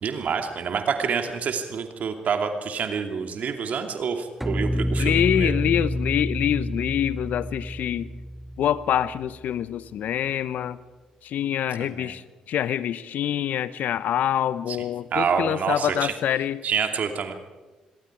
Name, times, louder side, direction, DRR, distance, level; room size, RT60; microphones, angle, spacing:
voice 1, 0.0-5.5 11.8-12.1 14.7-14.8 15.1-16.1 16.6-17.3, right 6 dB, 55° right, 5 dB, 2.7 m, -27 dB
sound 1, 4.4-9.6, equal, 5° right, 0.8 m, -29 dB
voice 2, 5.0-8.1 8.6-10.8 11.2-16.6, left 10 dB, 60° left, 17 dB, 0.8 m, -25 dB
26.0 x 21.0 x 4.8 m, 1.2 s
hypercardioid pair, 45°, 3 cm